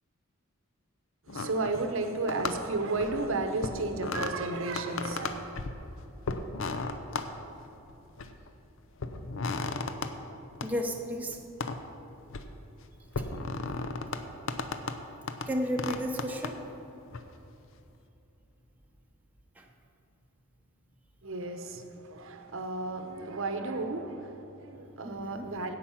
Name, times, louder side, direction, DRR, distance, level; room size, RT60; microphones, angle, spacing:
sound 1, 1.3-2.0 2.3-3.3 3.6-4.3 4.7-5.8 6.3-7.3 7.9-8.5 9.0-10.1 10.6-10.7 11.6-11.8 12.1-12.5 13.1-14.2 14.5-15.0 15.3-15.5 15.8-16.5 17.1-17.2, left 3 dB, 65° left, 0.6 m, -34 dB
voice 1, 1.3-5.5 21.2-25.8, right 3 dB, 65° right, 6 dB, 0.8 m, -33 dB
voice 2, 10.6-11.4 13.2-13.3 15.5-16.6 19.6-19.7 25.0-25.5, equal, 10° right, 1 dB, 0.7 m, -33 dB
10.0 x 8.4 x 5.8 m, 2.9 s
head